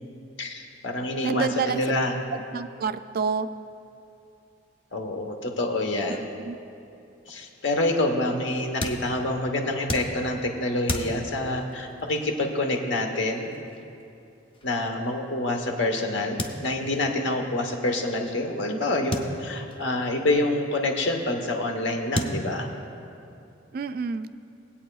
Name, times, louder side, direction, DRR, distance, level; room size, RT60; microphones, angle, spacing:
voice 1, 0.4-2.1 4.9-6.2 7.3-13.5 14.6-22.7, left 2 dB, 70° left, 3 dB, 1.1 m, -27 dB
voice 2, 1.2-2.0 2.5-3.5 6.4-6.6 23.7-24.3, right 5 dB, 50° right, 11 dB, 0.3 m, -28 dB
sound 1, 7.4-15.8 16.4-17.1 17.4-17.5 17.7-17.8 19.1-20.2 21.4-21.5 22.1-23.1, equal, 25° left, 0.7 m, -35 dB
20.0 x 8.6 x 2.4 m, 2.7 s
head